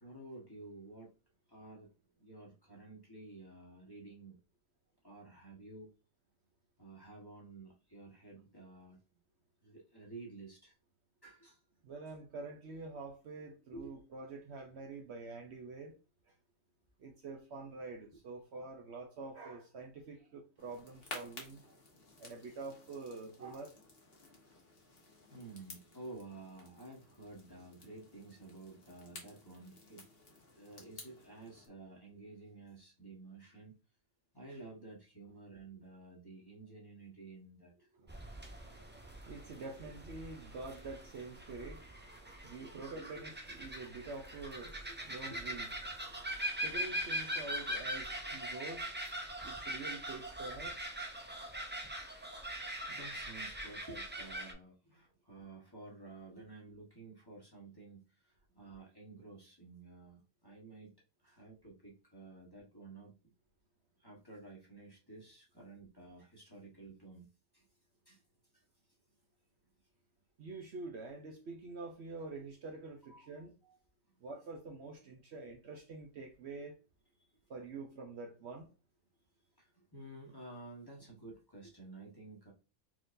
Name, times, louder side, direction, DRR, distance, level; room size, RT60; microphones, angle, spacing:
voice 1, 0.0-1.1 1.5-1.9 2.2-4.4 5.0-5.9 6.8-9.0 9.6-10.7 11.2-11.6 13.7-13.9 25.3-30.1 30.5-33.8 34.3-37.9 41.6-41.7 42.3-42.8 44.9-45.4 47.5-47.6 52.9-60.9 61.2-63.3 64.0-67.3 67.5-67.7 68.0-68.2 68.5-68.6 73.1-73.7 74.1-74.2 77.2-77.3 79.6-82.5, right 2 dB, 20° left, 1.2 m, -52 dB
voice 2, 11.8-15.9 17.0-21.7 22.2-23.7 37.9-49.1 49.4-50.8 70.4-73.5 74.2-76.8 77.5-78.7, right 3 dB, 60° right, 0.9 m, -47 dB
sound 1, 20.6-31.7, left 3 dB, 45° left, 1.3 m, -54 dB
sound 2, 38.1-54.5, right 1 dB, 15° right, 0.4 m, -42 dB
4.6 x 3.9 x 2.6 m
omnidirectional pair, 1.4 m